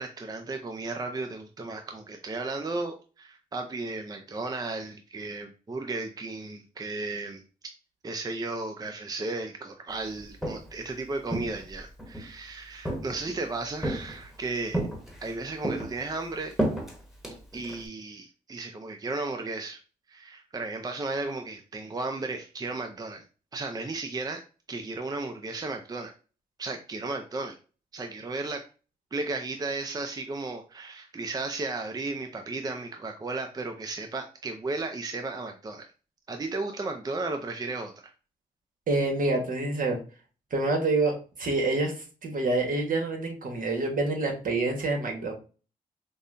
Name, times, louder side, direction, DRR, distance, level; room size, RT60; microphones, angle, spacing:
voice 1, 0.0-7.4 8.0-14.8 15.2-16.5 17.5-19.8 20.1-23.2 23.5-24.4 24.7-26.1 26.6-27.6 27.9-28.6 29.1-35.9 36.3-37.9, right 3 dB, 25° right, 5 dB, 0.5 m, -34 dB
Walk footsteps, 10.2-10.8 11.3-12.3 12.9-13.4 13.8-14.4 14.7-15.3 15.6-17.9, right 1 dB, ahead, 1.2 m, -32 dB
voice 2, 38.9-40.0 40.5-45.3, right 2 dB, 60° right, 2 dB, 1.3 m, -27 dB
5.3 x 2.2 x 2.6 m, 0.35 s
cardioid pair, 70°, 16 cm